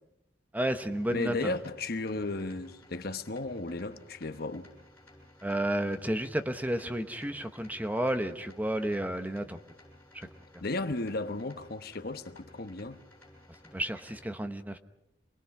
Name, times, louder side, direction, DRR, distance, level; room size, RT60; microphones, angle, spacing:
voice 1, 0.5-1.5 5.4-9.6 10.1-10.3 13.7-14.8, right 1 dB, 10° right, 1.0 m, -31 dB
sound 1, 0.6-14.3, left 1 dB, 10° left, 7.9 m, -56 dB
voice 2, 1.1-4.7 10.6-13.0, left 2 dB, 60° left, 1.1 m, -34 dB
27.5 x 20.0 x 6.0 m
head